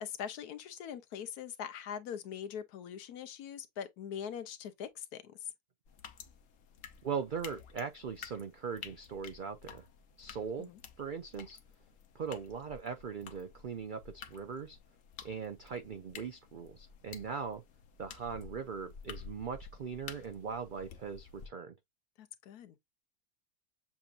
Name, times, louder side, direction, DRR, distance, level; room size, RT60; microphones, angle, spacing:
voice 1, 0.0-5.3 10.7-10.8 22.2-22.8, left 8 dB, 80° left, 1.3 m, -42 dB
sound 1, 5.9-21.5, left 7 dB, 65° left, 1.1 m, -52 dB
voice 2, 7.0-9.8 10.2-10.7 11.0-11.6 12.1-14.8 15.2-17.6 18.0-21.7, right 6 dB, 80° right, 0.4 m, -40 dB
7.1 x 2.7 x 2.4 m
omnidirectional pair, 1.6 m